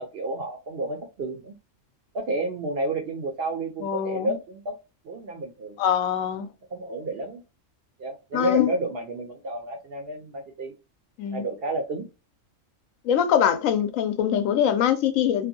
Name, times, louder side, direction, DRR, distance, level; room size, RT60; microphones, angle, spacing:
voice 1, 0.0-1.5 2.1-4.8 5.0-5.8 6.7-7.4 8.0-10.7 11.3-12.1, right 2 dB, 60° right, 0.7 m, -31 dB
voice 2, 3.8-4.3 5.8-6.5 8.3-8.7 11.2-11.4 13.0-15.5, left 9 dB, 75° left, 1.0 m, -23 dB
2.6 x 2.5 x 2.6 m
omnidirectional pair, 1.4 m